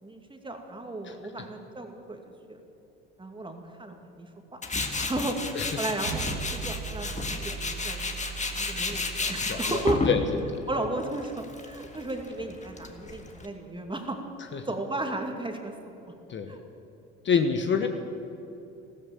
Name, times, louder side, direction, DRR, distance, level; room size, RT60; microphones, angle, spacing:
voice 1, 0.0-2.6 3.2-4.6 4.9-5.4 5.8-8.1 8.5-10.0 10.7-14.2 14.5-16.0 16.5-16.7 17.8-17.9, right 2 dB, 15° right, 4 dB, 2.4 m, -34 dB
Tools, 4.6-13.5, left 3 dB, 25° left, 1.8 m, -32 dB
sound 1, 6.0-10.6, right 7 dB, 60° right, 1.3 m, -39 dB
voice 2, 9.5-9.8 10.1-10.2 10.5-10.6 14.5-14.7 16.3-16.5 17.2-17.9, left 6 dB, 40° left, 6 dB, 1.2 m, -26 dB
14.5 x 14.0 x 7.2 m, 3.0 s
hypercardioid pair, 70°, 31 cm